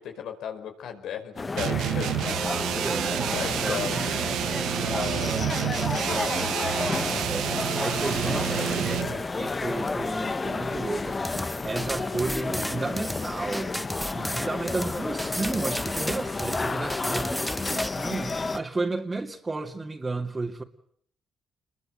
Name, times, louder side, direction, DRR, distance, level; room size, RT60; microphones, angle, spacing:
voice 1, 0.0-2.3 3.3-4.0 4.8-6.7 11.8-12.0, left 8 dB, 80° left, 4.9 m, -36 dB
sound 1, 1.4-18.6, left 3 dB, 30° left, 1.2 m, -31 dB
sound 2, 1.6-9.2, right 11 dB, 85° right, 1.3 m, -29 dB
voice 2, 2.8-4.0 4.7-5.5 6.0-6.5 7.2-13.8 14.1-20.6, right 3 dB, 25° right, 2.6 m, -33 dB
sound 3, 11.2-17.9, equal, ahead, 1.0 m, -33 dB
28.5 x 22.0 x 8.1 m
cardioid pair, 90°, 0 cm